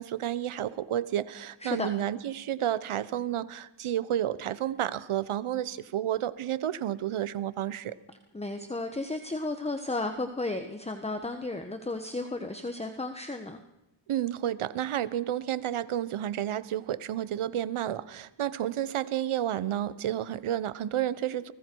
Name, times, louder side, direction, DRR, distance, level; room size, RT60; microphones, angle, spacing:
voice 1, 0.0-8.0 14.1-21.5, right 11 dB, 85° right, 16 dB, 1.0 m, -31 dB
voice 2, 8.3-13.6, left 2 dB, 15° left, 7 dB, 1.2 m, -33 dB
30.0 x 20.5 x 4.7 m, 0.93 s
cardioid pair, 85°, 49 cm